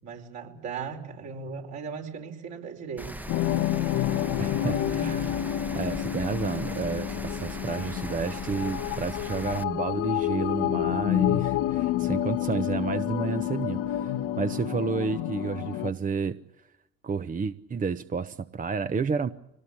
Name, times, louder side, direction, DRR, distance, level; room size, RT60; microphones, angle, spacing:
voice 1, 0.0-3.1, right 6 dB, 55° right, 2 dB, 5.0 m, -37 dB
Rain, 3.0-9.6, right 1 dB, 5° right, 1.1 m, -39 dB
sound 1, 3.3-15.9, left 12 dB, 65° left, 1.1 m, -29 dB
voice 2, 4.4-5.5 5.7-16.4 17.0-19.3, right 5 dB, 25° right, 12 dB, 0.9 m, -31 dB
24.5 x 19.0 x 8.7 m, 0.89 s
hypercardioid pair, 60°, 31 cm